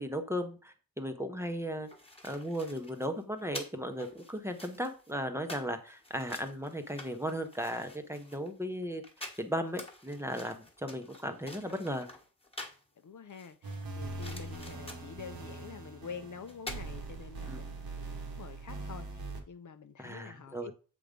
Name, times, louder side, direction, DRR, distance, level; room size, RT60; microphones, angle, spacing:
voice 1, 0.0-1.9 2.2-9.0 9.4-12.1 17.5-17.6 20.0-20.7, equal, 5° right, 0.7 m, -36 dB
sound 1, 1.6-12.9 13.3-15.2 16.2-16.3 16.5-16.8, left 1 dB, 15° left, 1.3 m, -48 dB
voice 2, 13.0-20.7, left 6 dB, 50° left, 0.6 m, -47 dB
sound 2, 13.6-19.4, right 3 dB, 65° right, 1.3 m, -42 dB
7.6 x 3.6 x 5.1 m
wide cardioid pair, 135°, 38 cm